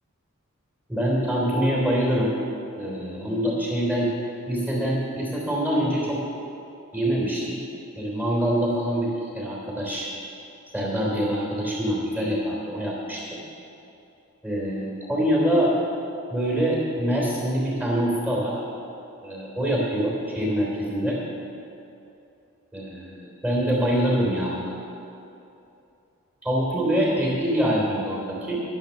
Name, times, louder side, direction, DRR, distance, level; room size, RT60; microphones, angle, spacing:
voice 1, 0.9-2.3 2.7-4.1 4.5-6.2 6.9-7.6 8.0-10.1 10.7-13.4 14.4-15.7 16.3-18.5 19.2-21.2 22.7-24.7 26.4-28.6, equal, 10° right, -3 dB, 3.2 m, -25 dB
10.5 x 10.5 x 6.7 m, 2.7 s
head